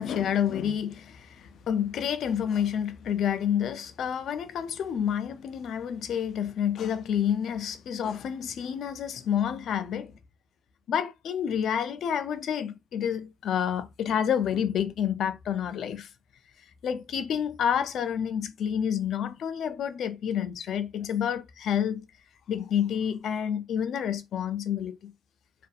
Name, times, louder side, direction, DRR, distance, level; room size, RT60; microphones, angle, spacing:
voice 1, 0.0-10.1 10.9-16.1 16.8-22.0 22.5-25.1, left 8 dB, 70° left, 0.4 m, -29 dB
2.6 x 2.4 x 2.4 m
cardioid pair, 90°, 0 cm